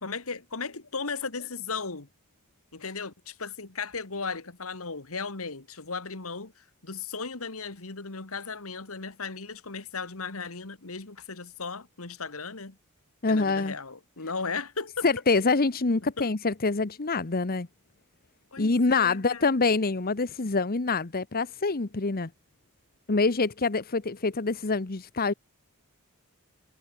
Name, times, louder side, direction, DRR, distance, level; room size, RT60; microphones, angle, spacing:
voice 1, 0.0-2.1 2.7-12.8 13.3-15.1 16.2-16.3 18.5-19.5, left 4 dB, 70° left, 2.0 m, -36 dB
voice 2, 13.2-13.7 15.0-17.7 18.6-22.3 23.1-25.3, left 3 dB, 45° left, 1.0 m, -25 dB
head